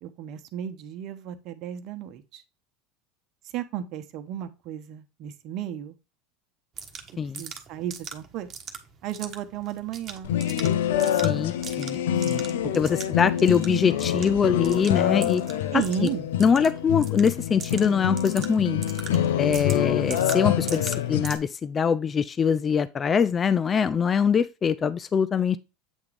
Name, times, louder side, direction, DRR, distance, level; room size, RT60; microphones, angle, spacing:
voice 1, 0.0-2.4 3.5-6.0 7.4-8.5 9.0-10.4 12.6-13.0 15.7-16.3, right 10 dB, 55° right, 0.9 m, -34 dB
sound 1, 6.8-21.4, right 6 dB, 35° right, 1.2 m, -42 dB
sound 2, 10.2-21.4, left 10 dB, 80° left, 0.6 m, -26 dB
voice 2, 11.1-12.0 12.3-12.5 12.7-15.4 15.7-16.1 16.4-18.8 19.4-25.6, left 6 dB, 30° left, 0.4 m, -23 dB
8.1 x 3.6 x 3.3 m
hypercardioid pair, 100°, 0 cm